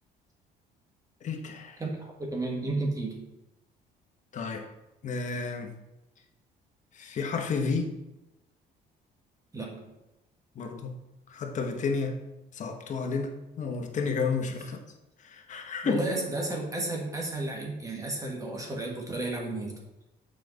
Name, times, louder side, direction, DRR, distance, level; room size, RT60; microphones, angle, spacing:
voice 1, 1.2-1.8 4.3-4.6 5.0-5.7 6.9-7.9 10.5-10.9 11.3-12.1 12.5-14.8 15.2-16.0, left 4 dB, 45° left, 3 dB, 1.2 m, -31 dB
voice 2, 1.8-3.3 9.5-9.9 15.8-19.8, right 2 dB, 20° right, 0 dB, 1.7 m, -32 dB
7.3 x 5.1 x 4.0 m, 0.97 s
cardioid pair, 110°, 17 cm